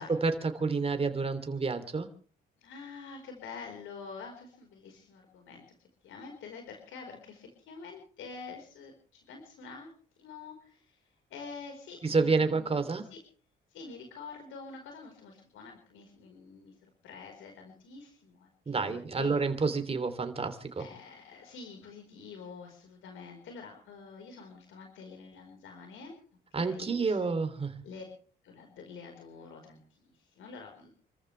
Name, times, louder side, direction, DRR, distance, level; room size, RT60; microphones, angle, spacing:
voice 1, 0.2-2.1 12.0-13.1 18.7-20.8 26.5-27.8, right 4 dB, 30° right, 8 dB, 3.2 m, -29 dB
voice 2, 2.6-5.6 6.0-9.9 10.2-12.8 13.1-13.2 13.7-16.8 17.0-19.4 20.8-26.2 26.5-27.3 27.8-28.0 28.4-30.9, left 5 dB, 80° left, 3 dB, 4.9 m, -47 dB
29.0 x 14.5 x 3.4 m, 0.43 s
cardioid pair, 90°, 20 cm